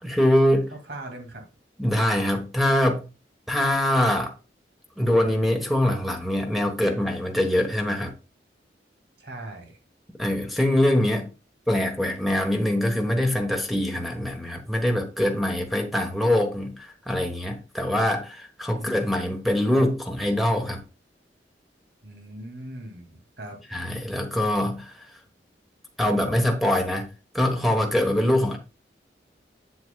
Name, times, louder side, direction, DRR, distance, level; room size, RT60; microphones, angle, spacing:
voice 1, 0.0-0.7 1.8-3.1 3.5-4.3 5.0-8.1 10.2-11.3 11.7-20.8 23.7-24.9 26.0-27.1 27.3-28.6, left 1 dB, ahead, 1.2 m, -23 dB
voice 2, 0.7-1.4 9.2-9.8 18.7-19.0 22.0-23.6, right 1 dB, 65° right, 2.4 m, -40 dB
7.9 x 7.8 x 2.3 m
head